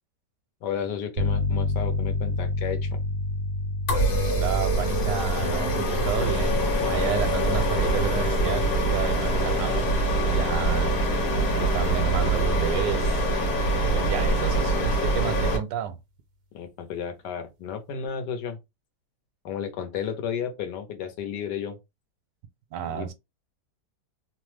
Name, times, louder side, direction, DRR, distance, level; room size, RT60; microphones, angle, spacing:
voice 1, 0.6-2.9 16.5-18.6 19.4-21.8 22.8-23.1, left 8 dB, 80° left, 1.3 m, -33 dB
sound 1, 1.2-11.7, left 2 dB, 65° right, 0.6 m, -31 dB
sound 2, 3.9-15.6, right 1 dB, 65° left, 1.4 m, -24 dB
voice 2, 4.3-11.0 11.6-13.2 13.8-16.0 22.7-23.1, right 9 dB, 80° right, 1.2 m, -31 dB
3.1 x 2.0 x 3.1 m
omnidirectional pair, 1.8 m